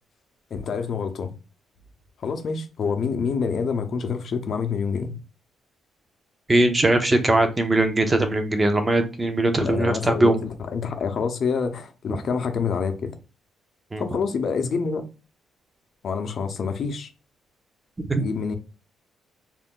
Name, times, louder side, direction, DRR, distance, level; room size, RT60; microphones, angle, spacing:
voice 1, 0.5-1.3 2.2-5.1 9.6-13.1 14.0-15.0 16.0-17.1 18.2-18.6, left 5 dB, 55° left, 0.6 m, -27 dB
voice 2, 6.5-10.4 13.9-14.0 18.1-18.2, right 2 dB, 20° right, 0.6 m, -20 dB
2.4 x 2.1 x 3.6 m
cardioid pair, 90°, 0 cm